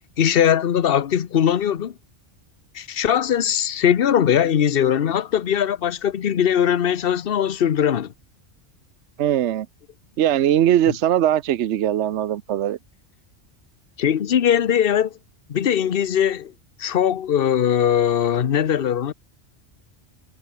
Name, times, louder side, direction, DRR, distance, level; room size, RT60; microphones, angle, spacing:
voice 1, 0.2-1.9 2.7-8.1 14.0-15.1 15.5-16.5 16.8-19.1, left 9 dB, 55° left, 1.0 m, -20 dB
voice 2, 9.2-9.7 10.2-12.8, right 11 dB, 75° right, 1.0 m, -20 dB
omnidirectional pair, 1.2 m